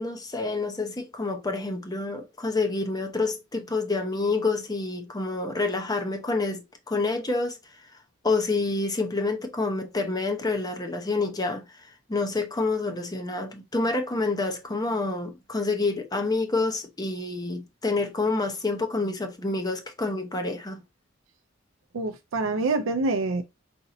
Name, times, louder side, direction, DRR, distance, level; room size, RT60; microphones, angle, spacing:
voice 1, 0.0-7.6 8.2-11.8 12.1-20.8, left 3 dB, 20° left, 0.7 m, -28 dB
voice 2, 21.9-23.4, right 3 dB, 80° right, 0.5 m, -26 dB
4.3 x 2.7 x 3.8 m
head